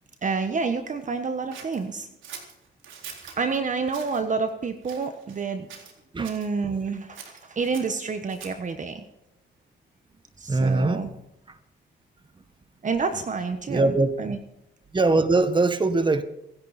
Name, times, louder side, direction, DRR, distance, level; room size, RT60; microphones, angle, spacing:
voice 1, 0.2-2.1 3.4-5.7 6.2-9.0 10.4-11.1 12.8-13.9 14.2-14.4, right 4 dB, 40° right, 7 dB, 1.4 m, -28 dB
Scissors, 1.5-3.4 3.9-4.2 4.8-5.4 5.7-6.5 7.1-8.7, right 7 dB, 75° right, 3.9 m, -43 dB
voice 2, 10.5-11.0 11.5-11.6 13.7-14.1 14.9-16.2, right 3 dB, 25° right, 10 dB, 1.7 m, -21 dB
25.5 x 11.0 x 4.4 m, 0.84 s
cardioid pair, 90°, 20 cm